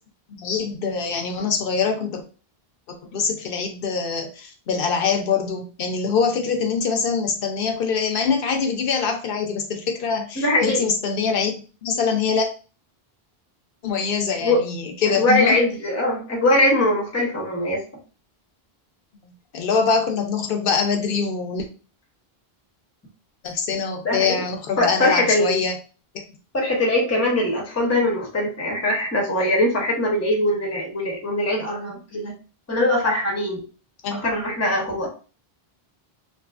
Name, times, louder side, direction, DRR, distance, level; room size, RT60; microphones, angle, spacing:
voice 1, 0.4-2.2 2.9-11.5 11.8-12.5 13.8-15.6 19.2-21.7 23.4-25.8 34.0-34.2, left 5 dB, 65° left, 4 dB, 0.7 m, -24 dB
voice 2, 10.4-10.8 14.4-14.6 15.2-17.8 24.0-24.4 24.8-25.6 26.5-32.3 32.7-33.6 34.1-35.1, left 1 dB, 20° left, -1 dB, 0.6 m, -21 dB
2.6 x 2.5 x 2.3 m, 0.36 s
omnidirectional pair, 1.0 m